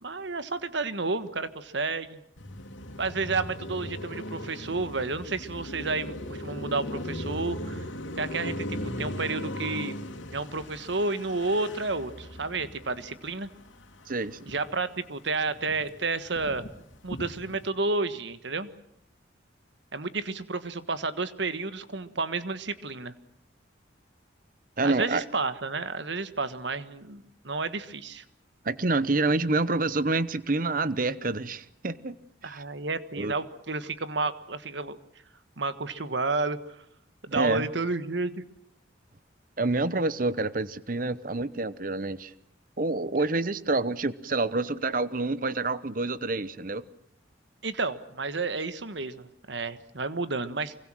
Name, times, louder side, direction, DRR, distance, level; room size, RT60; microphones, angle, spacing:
voice 1, 0.0-2.2 3.0-7.9 8.2-10.0 10.3-13.5 14.5-16.7 17.0-18.7 19.9-23.1 24.8-28.2 32.4-35.0 35.6-36.8 37.2-38.4 43.3-43.4 47.6-50.7, right 3 dB, 70° right, 12 dB, 1.5 m, -31 dB
Car passing by, 2.4-14.8 15.2-17.7, left 1 dB, 85° left, 2.9 m, -38 dB
voice 2, 14.1-14.5 24.8-25.2 28.6-32.2 32.4-32.6 33.2-33.3 37.3-37.7 39.6-42.3 42.8-46.8, right 3 dB, 45° right, 16 dB, 0.9 m, -27 dB
25.0 x 22.5 x 7.6 m, 0.74 s
head